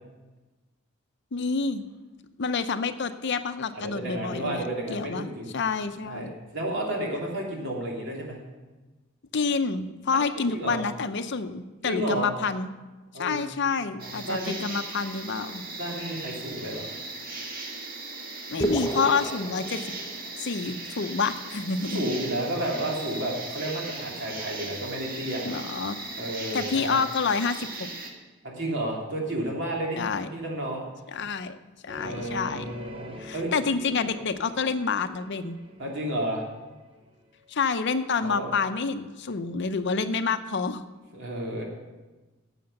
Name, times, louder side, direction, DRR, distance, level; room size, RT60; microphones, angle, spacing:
voice 1, 1.3-1.9 2.4-5.3 5.5-6.3 9.3-12.7 13.2-15.6 18.5-19.9 20.4-22.0 25.4-26.0 26.5-27.7 30.0-30.3 31.1-31.6 31.8-32.7 33.2-35.6 37.5-40.8, left 5 dB, 55° left, 10 dB, 0.6 m, -28 dB
voice 2, 3.8-5.5 6.0-8.4 10.1-10.8 11.8-12.3 13.1-13.4 13.9-14.6 15.8-16.9 21.9-25.5 26.2-27.0 28.4-30.8 32.0-33.5 35.8-36.4 38.2-38.5 41.1-41.6, right 1 dB, 60° right, -2 dB, 2.9 m, -31 dB
sound 1, 14.0-28.1, right 3 dB, 45° right, 1.8 m, -38 dB
sound 2, 18.6-20.5, equal, 15° left, 0.9 m, -31 dB
sound 3, 31.9-37.5, left 1 dB, 25° right, 1.0 m, -45 dB
11.0 x 7.9 x 6.7 m, 1.2 s
head